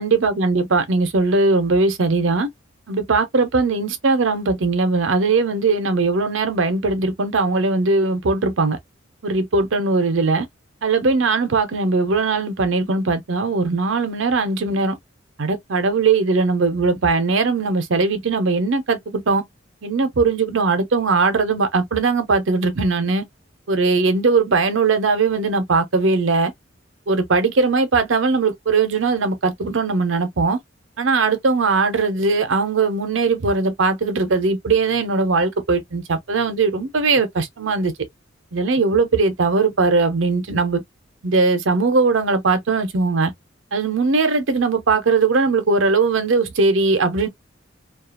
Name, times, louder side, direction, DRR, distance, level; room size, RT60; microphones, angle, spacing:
voice 1, 0.0-2.5 2.9-8.8 9.2-10.5 10.8-15.0 15.4-19.4 19.8-23.2 23.7-26.5 27.1-30.6 31.0-37.9 38.5-40.8 41.2-43.3 43.7-47.3, right 3 dB, 75° right, 0.7 m, -19 dB
2.4 x 2.4 x 2.3 m
head